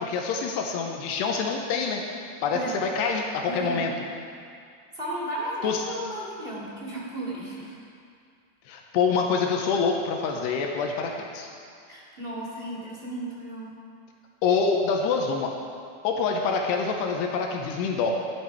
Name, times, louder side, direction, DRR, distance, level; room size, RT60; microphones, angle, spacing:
voice 1, 0.0-2.0 2.4-3.9 5.6-5.8 8.7-11.5 14.4-15.5 16.0-18.2, left 5 dB, 80° left, 1 dB, 2.9 m, -26 dB
voice 2, 3.4-3.9 4.9-7.7 11.9-13.8, right 1 dB, 20° right, -6 dB, 1.5 m, -34 dB
13.0 x 11.0 x 4.6 m, 2.3 s
omnidirectional pair, 4.8 m